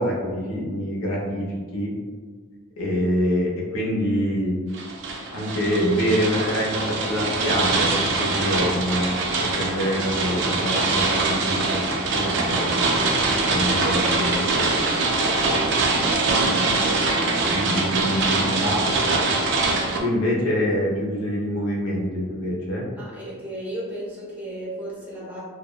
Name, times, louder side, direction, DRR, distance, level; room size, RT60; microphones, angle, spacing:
voice 1, 0.0-1.4 1.7-1.9 2.8-4.5 5.3-9.1 9.4-11.8 12.1-12.7 13.5-15.2 17.5-19.2 20.0-22.9, equal, 75° left, -3 dB, 0.5 m, -25 dB
sound 1, 4.7-20.0, right 3 dB, 60° right, 0.3 m, -23 dB
voice 2, 22.9-25.4, right 1 dB, 10° right, -7 dB, 0.6 m, -34 dB
2.7 x 2.0 x 2.3 m, 1.5 s
head